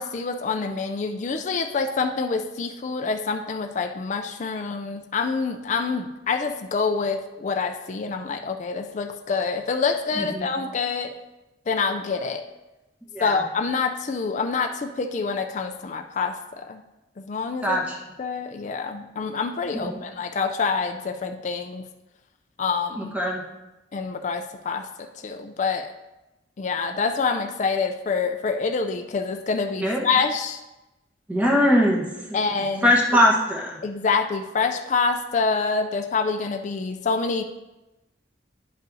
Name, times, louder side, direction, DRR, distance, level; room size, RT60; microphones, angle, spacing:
voice 1, 0.0-11.1 11.7-12.4 13.2-16.8 17.2-17.9 18.2-21.8 22.6-23.1 23.9-25.9 26.6-30.6 32.3-32.9 33.8-37.4, left 4 dB, 40° left, 6 dB, 0.4 m, -26 dB
voice 2, 10.2-10.5 13.1-13.4 17.6-18.0 19.7-20.0 23.0-23.4 29.8-30.0 31.3-32.0 32.8-33.8, equal, 10° right, -3 dB, 1.1 m, -21 dB
10.5 x 5.4 x 2.7 m, 1.0 s
head